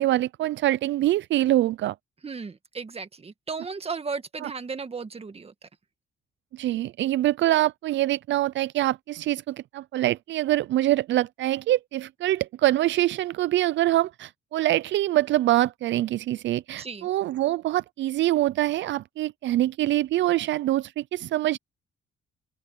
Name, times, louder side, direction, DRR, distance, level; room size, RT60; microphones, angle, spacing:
voice 1, 0.0-1.9 4.4-4.5 6.5-21.6, right 15 dB, 70° right, 0.4 m, -24 dB
voice 2, 2.2-5.7 16.8-17.1, right 5 dB, 30° right, 1.8 m, -35 dB
open air
cardioid pair, 90°, 20 cm